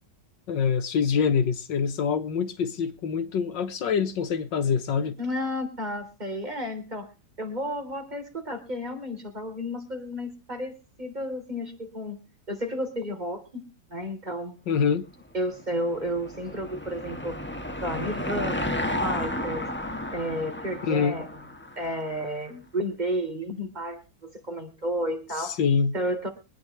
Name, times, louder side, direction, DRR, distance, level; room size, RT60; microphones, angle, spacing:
voice 1, 0.5-5.2 14.7-15.1 20.9-21.2 25.4-25.9, left 6 dB, 80° left, 1.8 m, -25 dB
voice 2, 5.2-7.1 7.4-12.2 12.5-13.7 13.9-14.6 15.3-17.4 17.8-19.7 20.1-21.3 21.8-25.6 25.9-26.3, equal, 25° right, 3.8 m, -32 dB
Car passing by / Engine, 15.5-22.3, left 1 dB, 5° left, 1.2 m, -33 dB
24.5 x 9.4 x 3.2 m
omnidirectional pair, 2.0 m